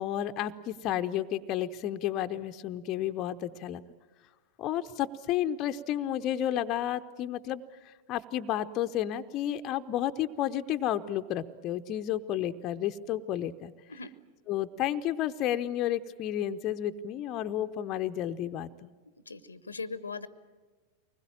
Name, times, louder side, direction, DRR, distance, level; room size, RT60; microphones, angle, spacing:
voice 1, 0.0-3.8 4.6-13.7 14.5-18.9, left 11 dB, 35° left, 8 dB, 0.7 m, -31 dB
voice 2, 19.3-20.3, left 4 dB, 75° left, 17 dB, 0.8 m, -39 dB
24.5 x 20.5 x 8.9 m, 1.3 s
figure-of-eight pair, 90°, 0 cm